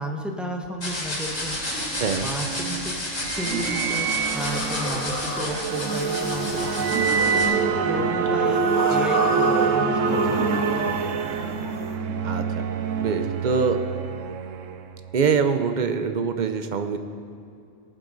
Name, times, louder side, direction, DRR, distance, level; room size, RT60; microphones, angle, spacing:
voice 1, 0.0-1.6 2.2-2.9 3.3-4.1 4.3-6.9 7.2-8.6 8.9-10.4 10.6-11.1, equal, ahead, 2 dB, 1.0 m, -33 dB
sound 1, 0.8-7.4, left 1 dB, 85° left, 3.0 m, -31 dB
sound 2, 1.4-15.1, right 6 dB, 85° right, 1.0 m, -25 dB
sound 3, 4.2-7.8 8.3-11.9, left 3 dB, 65° left, 1.3 m, -33 dB
voice 2, 13.0-13.8 15.1-17.0, right 5 dB, 45° right, 8 dB, 0.7 m, -24 dB
18.5 x 7.6 x 4.0 m, 2.5 s
omnidirectional pair, 1.3 m